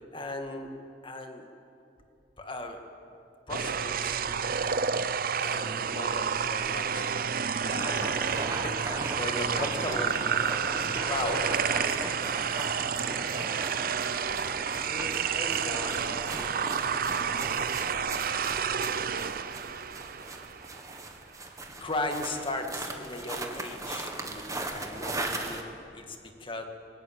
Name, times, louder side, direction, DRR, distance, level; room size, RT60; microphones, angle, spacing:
voice 1, 0.1-0.7 1.0-1.5 2.4-2.8 3.5-5.0 5.4-7.2 7.6-8.8 9.1-12.9 13.2-13.9 14.8-18.0 18.6-19.4 21.4-26.6, left 2 dB, 30° left, 5 dB, 2.1 m, -38 dB
sound 1, 3.5-20.8, right 7 dB, 55° right, 0.7 m, -30 dB
sound 2, 7.7-25.6, right 2 dB, 20° right, 1.7 m, -38 dB
21.5 x 18.5 x 9.0 m, 2.6 s
head